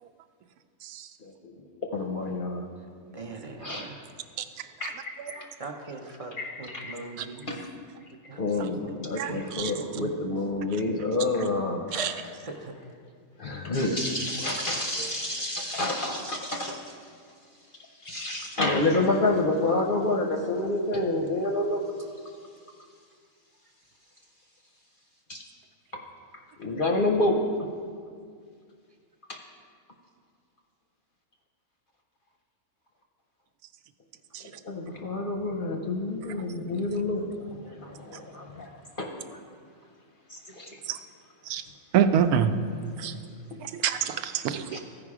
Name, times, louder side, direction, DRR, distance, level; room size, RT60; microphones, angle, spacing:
voice 1, 1.2-2.7 3.6-3.9 4.8-5.5 6.4-6.9 7.5-7.7 8.4-11.9 13.4-17.0 18.0-21.8 25.3-25.4 25.9-26.0 26.6-27.4 29.3-29.4 34.6-39.1 40.3-40.8 44.7-44.8, left 2 dB, 50° left, 2 dB, 0.7 m, -28 dB
voice 2, 3.1-4.1 5.6-7.5 8.3-9.0 9.3-10.2 11.9-12.7 37.7-37.8, right 3 dB, 45° right, 3 dB, 0.4 m, -40 dB
voice 3, 9.2-9.7 12.0-12.1 34.3-34.4 40.9-41.0 41.5-41.6 41.9-42.5 43.0-43.1 43.6-44.8, right 8 dB, 85° right, 9 dB, 1.1 m, -26 dB
14.5 x 5.0 x 4.8 m, 2.1 s
omnidirectional pair, 1.5 m